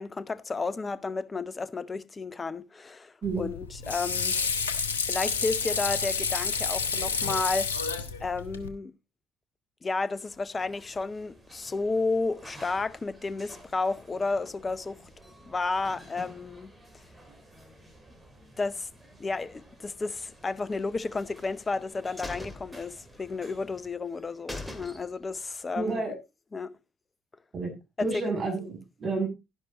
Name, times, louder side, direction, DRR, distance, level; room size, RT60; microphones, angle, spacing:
voice 1, 0.0-4.4 4.7-7.9 8.2-8.9 9.8-15.1 15.5-17.0 18.6-18.9 19.2-26.0 26.5-26.7 28.0-28.2, left 3 dB, 30° left, 0.8 m, -32 dB
Water / Sink (filling or washing), 3.2-8.7, left 5 dB, 85° left, 0.8 m, -30 dB
sound 1, 10.0-23.9, equal, 20° right, 5.2 m, -53 dB
sound 2, 21.1-21.8 22.2-23.5 23.8-23.9 24.2-24.3 24.5-25.4 25.7-25.8, left 1 dB, 5° left, 2.3 m, -41 dB
voice 2, 25.7-26.1 27.5-27.7 28.0-29.3, right 3 dB, 45° right, 7.5 m, -30 dB
11.5 x 11.5 x 2.9 m
figure-of-eight pair, 50°, 0 cm